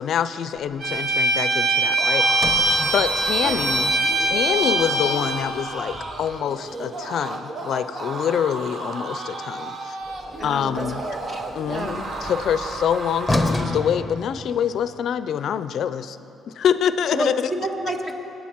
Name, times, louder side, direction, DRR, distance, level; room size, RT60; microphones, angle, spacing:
voice 1, 0.0-2.5 2.8-10.0 10.4-11.0 11.5-16.2 16.5-17.5, left 8 dB, 70° left, 13 dB, 0.4 m, -25 dB
Bowed string instrument, 0.8-5.4, right 2 dB, 70° right, 1.3 m, -22 dB
sound 1, 1.9-14.0, right 2 dB, 50° right, 1.2 m, -34 dB
Sliding door, 2.3-6.5 10.0-14.9, left 2 dB, 10° left, 0.9 m, -32 dB
voice 2, 10.4-12.0 17.1-18.2, right 1 dB, 35° right, 3 dB, 1.6 m, -30 dB
18.0 x 9.2 x 4.6 m, 2.8 s
cardioid pair, 90°, 0 cm